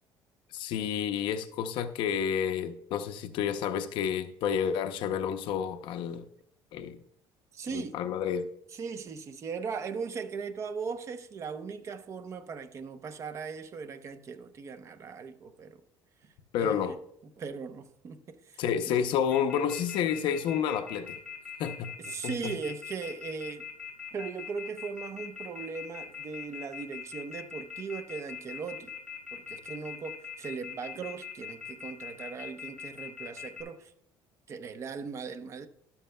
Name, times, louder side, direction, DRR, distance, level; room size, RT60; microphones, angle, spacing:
voice 1, 0.5-6.2 6.7-7.0 7.7-8.5 16.5-16.9 18.6-21.2 21.6-21.9 22.2-22.5, left 8 dB, 60° left, 0.7 m, -30 dB
voice 2, 7.5-8.0 8.7-15.8 16.2-17.0 17.4-18.6 22.0-23.7 24.1-28.9 29.3-33.9 34.5-35.7, right 5 dB, 30° right, 0.7 m, -39 dB
Telephone, 19.3-33.6, left 8 dB, 10° left, 3.7 m, -41 dB
12.5 x 12.0 x 2.2 m
cardioid pair, 165°, 9 cm